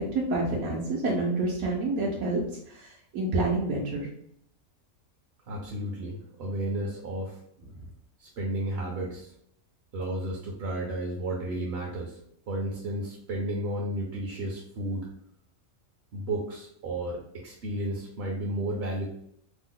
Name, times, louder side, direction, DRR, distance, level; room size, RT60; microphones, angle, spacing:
voice 1, 0.0-2.4 3.1-4.1, right 2 dB, 80° right, -3 dB, 1.1 m, -27 dB
voice 2, 5.5-7.4 8.2-9.3 9.9-12.2 12.5-15.1 16.1-19.1, right 1 dB, 60° right, -2 dB, 0.7 m, -32 dB
3.0 x 2.0 x 3.6 m, 0.69 s
omnidirectional pair, 1.4 m